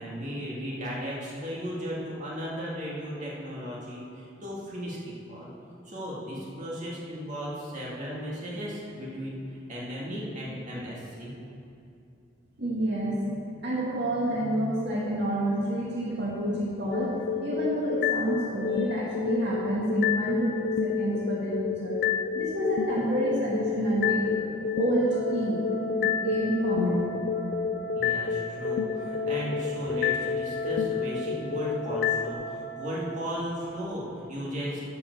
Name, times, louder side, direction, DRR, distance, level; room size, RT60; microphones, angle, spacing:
voice 1, 0.0-5.5 5.8-11.3 28.0-34.8, equal, 40° right, -5 dB, 2.2 m, -35 dB
voice 2, 12.6-17.1 17.4-22.0 22.3-24.4 24.7-25.6 26.0-27.1, right 1 dB, 65° right, -6 dB, 2.0 m, -28 dB
sound 1, 16.9-32.3, left 7 dB, 55° left, 0.4 m, -30 dB
sound 2, 25.1-33.3, right 5 dB, 80° left, 2.3 m, -39 dB
11.5 x 5.9 x 6.7 m, 2.6 s
head